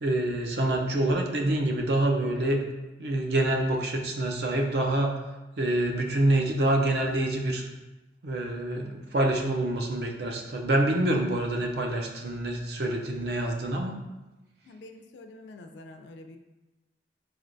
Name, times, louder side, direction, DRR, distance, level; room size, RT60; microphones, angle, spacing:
voice 1, 0.0-2.6 3.0-5.2 5.6-7.6 8.2-14.0, right 1 dB, 60° right, 2 dB, 0.5 m, -26 dB
voice 2, 14.7-16.4, left 2 dB, 80° left, 6 dB, 0.4 m, -46 dB
3.8 x 3.3 x 2.6 m, 1.1 s
head